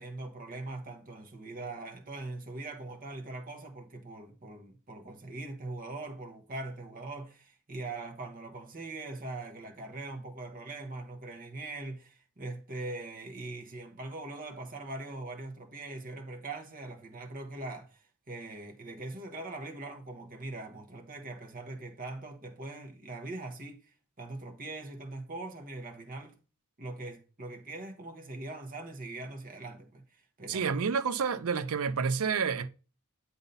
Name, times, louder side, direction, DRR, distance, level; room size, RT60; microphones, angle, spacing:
voice 1, 0.0-26.3 26.8-30.8, right 2 dB, 40° right, 1.0 m, -42 dB
voice 2, 30.5-32.7, right 6 dB, 70° right, 0.5 m, -29 dB
7.9 x 2.7 x 5.3 m
head